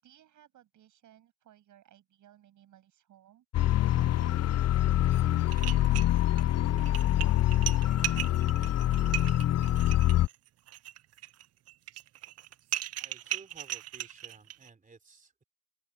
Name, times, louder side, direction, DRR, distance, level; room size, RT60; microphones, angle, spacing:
voice 1, 0.0-9.1, right 12 dB, 85° right, 7.4 m, -60 dB
sound 1, 3.5-10.3, left 13 dB, 60° left, 0.6 m, -25 dB
sound 2, 5.1-5.2 5.5-6.4 6.8-14.7, right 13 dB, 55° right, 0.5 m, -37 dB
voice 2, 13.0-15.4, right 4 dB, 25° right, 3.8 m, -55 dB
open air
cardioid pair, 135°, 29 cm